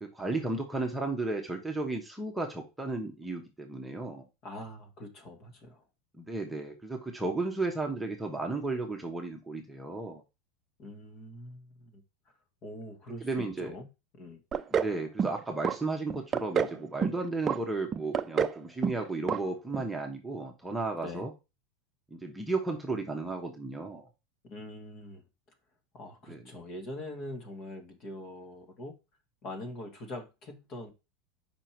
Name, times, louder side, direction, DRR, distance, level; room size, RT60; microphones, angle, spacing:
voice 1, 0.0-4.2 6.2-10.2 13.2-13.7 14.7-21.3 22.1-24.1 26.3-26.4, right 3 dB, 5° right, 2 dB, 1.1 m, -34 dB
voice 2, 4.4-5.8 10.8-12.0 12.6-13.9 14.2-14.4 21.0-21.3 24.4-25.2 25.9-28.9 29.4-30.9, left 1 dB, 40° left, 5 dB, 1.9 m, -43 dB
sound 1, 14.5-14.9 15.2-15.8 16.1-16.8 17.0-17.6 17.9-18.6 18.8-19.0 19.3-19.4 19.7-19.8, right 7 dB, 25° right, 0.5 m, -28 dB
5.3 x 4.4 x 4.4 m, 0.26 s
supercardioid pair, 135°, 0 cm